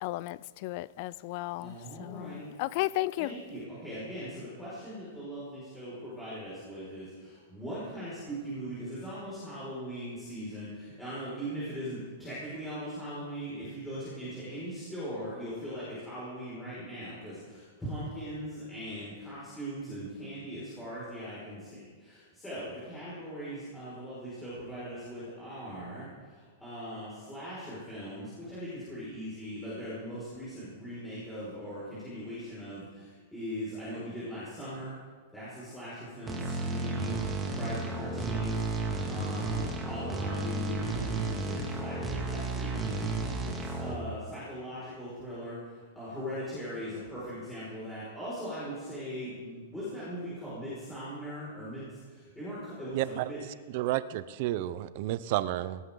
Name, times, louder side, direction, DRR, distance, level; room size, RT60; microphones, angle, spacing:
voice 1, 0.0-3.3, left 17 dB, 40° left, 20 dB, 0.4 m, -34 dB
voice 2, 1.6-2.5 3.2-34.9 35.3-37.2 37.5-38.6 39.1-53.4, equal, 5° left, -11 dB, 5.8 m, -40 dB
sound 1, 36.3-43.9, right 2 dB, 10° right, 2.2 m, -33 dB
voice 3, 52.9-53.3 53.7-55.8, right 15 dB, 45° right, 14 dB, 0.7 m, -31 dB
19.5 x 17.5 x 4.0 m, 1.5 s
hypercardioid pair, 160°, 0 cm